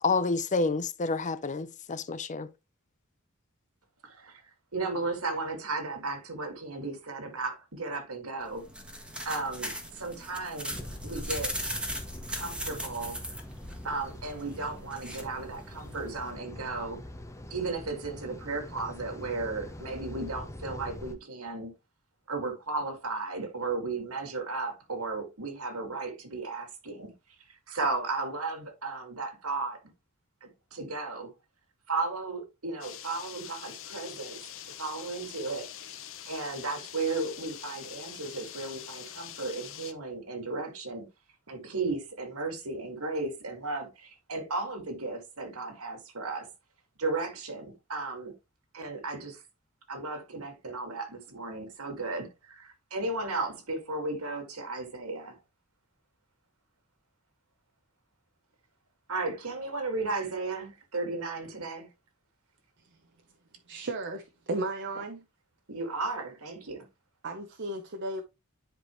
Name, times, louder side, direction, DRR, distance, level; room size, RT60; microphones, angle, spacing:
voice 1, 0.0-2.5, left 4 dB, 35° left, 0.6 m, -29 dB
voice 2, 4.0-4.4 4.7-8.6 9.3-10.7 11.0-11.7 12.3-13.2 13.8-17.0 17.5-21.7 22.3-27.1 27.5-29.8 30.4-31.3 31.9-34.4 34.8-35.9 36.3-41.1 41.5-46.5 47.0-48.3 48.7-49.4 49.9-55.4 59.1-61.9 65.7-66.9, right 3 dB, 70° right, 2.1 m, -35 dB
sound 1, 8.4-16.3, equal, 5° right, 1.5 m, -39 dB
sound 2, 10.7-21.2, left 1 dB, 15° left, 0.9 m, -43 dB
sound 3, 32.8-39.9, left 10 dB, 60° left, 0.9 m, -44 dB
voice 3, 63.7-65.2 67.2-68.2, right 2 dB, 50° right, 0.9 m, -34 dB
10.0 x 5.0 x 3.1 m
head